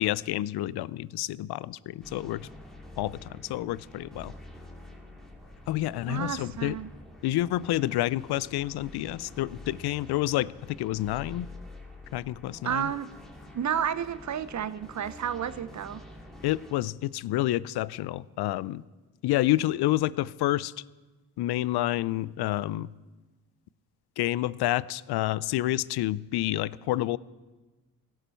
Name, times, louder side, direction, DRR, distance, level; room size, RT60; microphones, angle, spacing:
voice 1, 0.0-2.5 3.0-4.3 5.7-6.8 7.2-10.5 10.8-11.5 12.1-12.9 16.4-18.8 19.2-20.7 21.4-22.9 24.2-27.2, left 15 dB, 70° left, 21 dB, 0.5 m, -29 dB
sound 1, 2.0-16.7, left 1 dB, ahead, 2.5 m, -47 dB
voice 2, 6.1-6.9 12.6-13.1 13.5-16.0, right 9 dB, 45° right, 16 dB, 0.7 m, -31 dB
16.5 x 12.5 x 4.5 m, 1.2 s
supercardioid pair, 60°, 40 cm